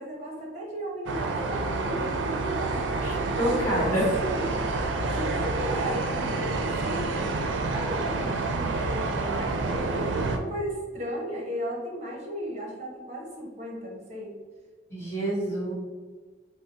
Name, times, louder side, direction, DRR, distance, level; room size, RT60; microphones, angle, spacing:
voice 1, 0.0-2.9 3.4-3.9 4.2-4.6 5.1-7.4 7.7-14.3, equal, 40° right, -2 dB, 0.9 m, -35 dB
sound 1, 1.1-10.4, right 3 dB, 80° right, 0.4 m, -28 dB
voice 2, 3.0-4.1 14.9-15.7, right 1 dB, 15° left, -7 dB, 1.4 m, -27 dB
3.6 x 2.0 x 4.1 m, 1.4 s
head